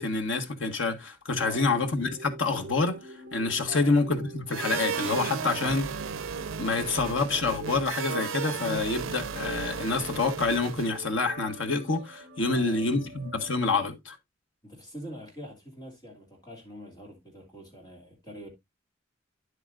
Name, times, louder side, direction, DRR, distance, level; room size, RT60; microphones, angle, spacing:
voice 1, 0.0-3.0 3.3-5.8 6.6-14.2, left 3 dB, 75° left, 1.6 m, -27 dB
sound 1, 1.4-13.9, right 3 dB, 50° right, 0.9 m, -45 dB
sound 2, 4.5-11.1, right 6 dB, 85° right, 0.6 m, -35 dB
voice 2, 5.4-5.8 12.4-13.0 14.6-18.5, equal, 20° left, 2.9 m, -44 dB
9.7 x 8.1 x 2.5 m
head